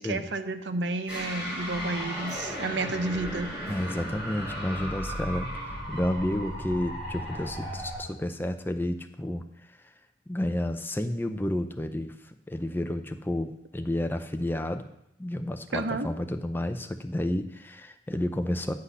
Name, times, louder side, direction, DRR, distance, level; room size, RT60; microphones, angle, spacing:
voice 1, 0.0-3.5 15.7-16.1, right 2 dB, 70° right, 9 dB, 0.7 m, -31 dB
sound 1, 1.1-8.0, equal, 5° right, 3.1 m, -35 dB
voice 2, 3.7-5.5 5.9-9.8 10.3-14.8 15.2-18.7, left 1 dB, 10° left, 7 dB, 0.5 m, -31 dB
9.7 x 6.1 x 5.5 m, 0.80 s
head